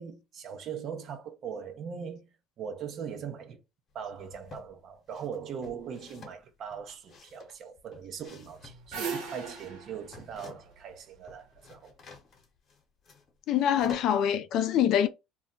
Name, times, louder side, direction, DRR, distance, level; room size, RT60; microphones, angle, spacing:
voice 1, 0.0-2.3 2.6-3.6 3.9-11.9, right 7 dB, 55° right, 0.6 m, -40 dB
sound 1, 4.0-4.7 5.1-10.9 11.1-14.3, left 5 dB, 45° left, 0.9 m, -50 dB
sound 2, 8.4-11.6, right 6 dB, 75° right, 0.9 m, -39 dB
voice 2, 13.5-15.1, left 10 dB, 65° left, 0.4 m, -25 dB
2.2 x 2.1 x 3.8 m
supercardioid pair, 95°, 0 cm